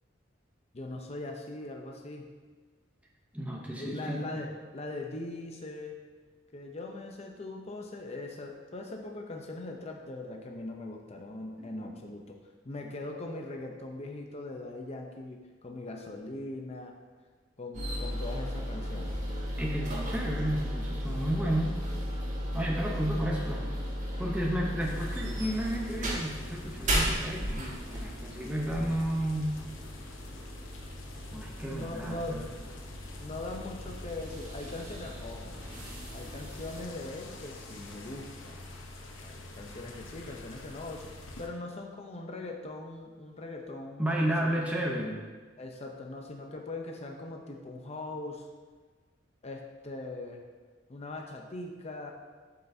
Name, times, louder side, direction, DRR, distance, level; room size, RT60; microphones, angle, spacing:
voice 1, 0.7-2.3 3.8-5.9 6.5-12.4 12.6-16.9 17.6-19.1 31.3-32.4 33.2-35.6 36.1-38.6 39.2-44.5 45.6-48.5 49.4-50.4 50.9-52.1, left 2 dB, 35° left, 2 dB, 0.7 m, -41 dB
voice 2, 3.3-4.5 11.6-11.9 19.6-21.8 22.3-23.7 24.2-29.6 31.3-32.4 44.0-45.2, right 1 dB, 5° right, -2 dB, 0.8 m, -32 dB
sound 1, 17.7-36.8, equal, 40° right, 1.6 m, -36 dB
sound 2, 24.8-41.5, left 2 dB, 85° left, 0.9 m, -47 dB
11.5 x 5.6 x 2.7 m, 1.4 s
head